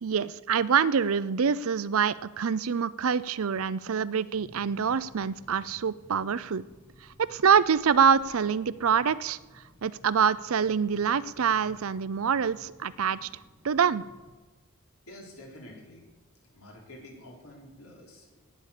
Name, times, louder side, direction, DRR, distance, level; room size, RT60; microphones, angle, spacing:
voice 1, 0.0-6.6 7.2-9.4 9.8-13.3 13.6-14.0, right 7 dB, 75° right, 17 dB, 0.5 m, -25 dB
sound 1, 4.4-14.3, equal, 10° right, 6.0 m, -56 dB
voice 2, 15.1-16.1 16.5-18.4, left 1 dB, 90° left, -1 dB, 4.2 m, -48 dB
18.0 x 8.6 x 6.7 m, 1.2 s
head